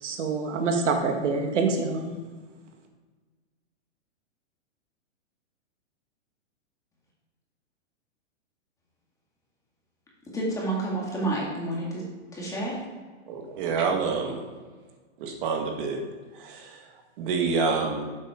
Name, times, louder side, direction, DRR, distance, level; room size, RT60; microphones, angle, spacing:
voice 1, 0.0-2.1, right 4 dB, 75° right, 4 dB, 1.6 m, -26 dB
voice 2, 10.3-12.1 12.3-12.8, right 2 dB, 10° left, -4 dB, 2.0 m, -29 dB
voice 3, 13.3-14.4 15.2-16.0 16.3-18.0, right 5 dB, 45° right, 2 dB, 1.7 m, -28 dB
7.6 x 7.4 x 4.9 m, 1.4 s
hypercardioid pair, 155°, 37 cm